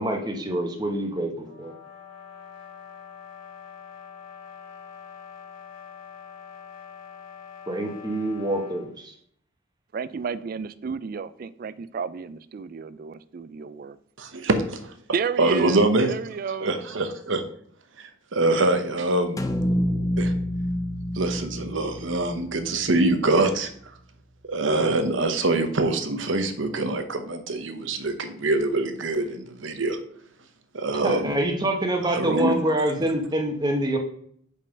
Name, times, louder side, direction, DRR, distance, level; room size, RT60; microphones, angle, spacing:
voice 1, 0.0-1.7 7.7-9.1 31.0-34.0, right 1 dB, 20° right, 2 dB, 1.1 m, -26 dB
sound 1, 1.4-8.9, left 7 dB, 80° left, 1.4 m, -44 dB
voice 2, 9.9-14.0 15.1-16.8, right 5 dB, 45° right, 15 dB, 0.3 m, -32 dB
voice 3, 14.2-14.9 15.4-16.1 16.6-17.4 18.0-19.4 20.2-20.3 21.1-23.9 24.5-30.0 30.7-31.3 32.0-32.6, right 2 dB, 70° right, 8 dB, 0.9 m, -24 dB
sound 2, 19.4-23.6, equal, 15° left, 0.5 m, -28 dB
5.4 x 5.4 x 5.2 m, 0.63 s
head